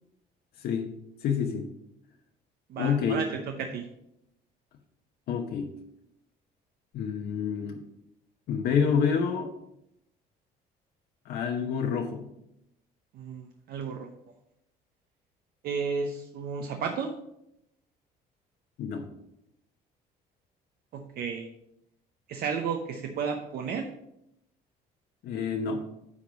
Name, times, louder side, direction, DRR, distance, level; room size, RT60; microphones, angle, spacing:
voice 1, 1.2-1.7 2.8-3.2 5.3-5.7 6.9-7.8 8.5-9.5 11.3-12.2 18.8-19.0 25.2-25.8, left 6 dB, 70° left, 3 dB, 1.0 m, -28 dB
voice 2, 2.7-3.8 13.1-14.1 15.6-17.1 20.9-21.5 22.3-23.9, right 6 dB, 65° right, 4 dB, 0.8 m, -33 dB
9.8 x 3.6 x 6.1 m, 0.82 s
cardioid pair, 110°, 17 cm